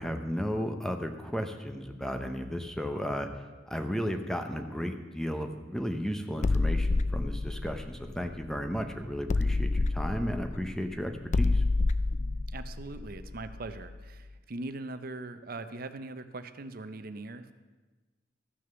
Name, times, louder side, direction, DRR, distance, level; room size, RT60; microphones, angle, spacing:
voice 1, 0.0-11.6, equal, 5° left, 6 dB, 0.7 m, -34 dB
sound 1, 6.4-8.8 9.3-13.9, left 3 dB, 35° left, 0.4 m, -28 dB
voice 2, 12.5-17.5, right 2 dB, 45° right, 11 dB, 0.7 m, -41 dB
14.0 x 6.4 x 6.8 m, 1.3 s
head